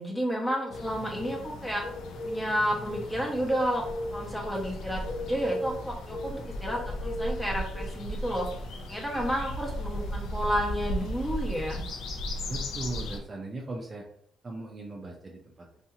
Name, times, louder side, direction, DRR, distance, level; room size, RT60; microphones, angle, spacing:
voice 1, 0.0-1.8 2.2-3.8 4.1-8.5 8.9-11.8, equal, 5° left, -2 dB, 0.9 m, -31 dB
sound 1, 0.7-13.2, equal, 85° left, 0.4 m, -35 dB
voice 2, 12.5-14.1 14.4-15.7, right 2 dB, 30° right, 0 dB, 0.5 m, -38 dB
2.7 x 2.4 x 2.7 m, 0.63 s
cardioid pair, 90°, 0 cm